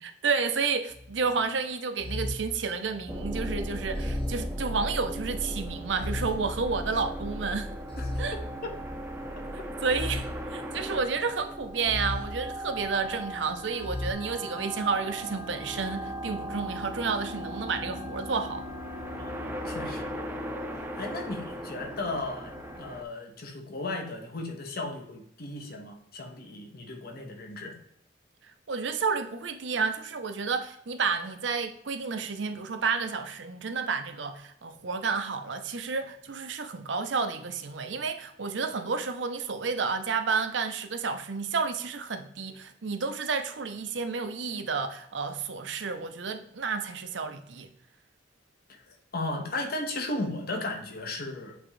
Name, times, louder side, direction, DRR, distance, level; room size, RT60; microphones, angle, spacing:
voice 1, 0.0-7.7 8.2-8.4 9.8-18.7 28.4-47.7, right 5 dB, 70° right, 0.7 m, -31 dB
sound 1, 0.9-1.3 2.0-3.3 4.0-5.2 5.9-7.2 7.9-9.2 9.9-11.2 11.8-13.1 13.8-14.1, left 1 dB, 30° left, 1.1 m, -37 dB
sound 2, 3.1-23.0, equal, 10° right, 0.6 m, -37 dB
voice 2, 19.2-20.1 21.0-27.8 48.9-51.6, left 2 dB, 55° left, 1.1 m, -35 dB
8.0 x 3.7 x 3.2 m
head